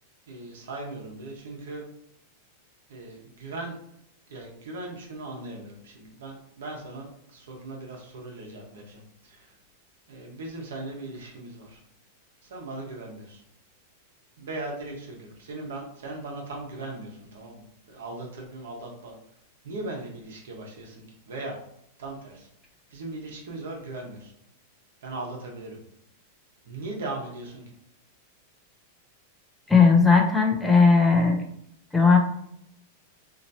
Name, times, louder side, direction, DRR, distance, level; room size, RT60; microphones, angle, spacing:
voice 1, 0.3-1.8 2.9-3.8 4.3-9.5 10.1-11.8 12.4-13.4 14.4-19.1 19.6-21.6 22.0-22.5 22.9-24.3 25.0-25.8 26.6-27.6, right 2 dB, 85° right, 0 dB, 1.2 m, -38 dB
voice 2, 29.7-31.4 31.9-32.2, left 4 dB, 5° left, 0 dB, 0.5 m, -17 dB
4.1 x 2.9 x 2.8 m, 0.74 s
supercardioid pair, 170°, 0 cm